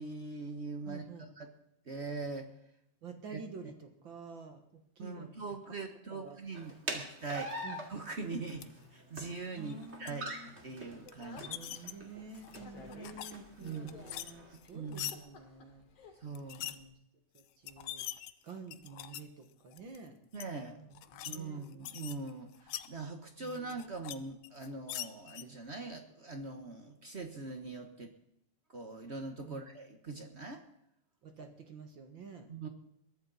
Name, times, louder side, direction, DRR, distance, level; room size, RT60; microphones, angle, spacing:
voice 1, 0.0-1.5 1.9-2.5 3.3-3.4 5.0-7.5 7.9-10.3 10.6-11.8 13.6-13.9 14.7-15.2 16.2-16.7 20.3-20.8 21.3-28.1 28.7-30.6 32.5-32.7, right 3 dB, 70° right, 6 dB, 0.6 m, -42 dB
voice 2, 0.8-1.3 3.0-5.3 6.1-6.4 6.9-7.1 7.6-7.8 9.6-10.5 11.3-15.8 16.6-16.9 17.3-18.1 18.4-20.2 20.7-21.6 23.4-23.6 29.4-29.6 31.2-32.5, right 4 dB, 50° right, 6 dB, 1.9 m, -49 dB
sound 1, 6.5-14.5, right 1 dB, 25° right, 2.5 m, -45 dB
sound 2, 8.5-8.6 9.5-10.1 11.1-11.9 12.4-13.3 13.6-15.2 16.3-16.8 17.4-17.5 17.7-19.2 19.7-20.0 20.3-20.4 20.9-21.4 21.6-22.9 23.4-24.1 24.4-25.4, left 12 dB, 75° left, 1.3 m, -43 dB
Speech, 10.8-16.8, left 4 dB, 55° left, 3.6 m, -56 dB
22.0 x 14.0 x 4.1 m, 0.78 s
omnidirectional pair, 3.4 m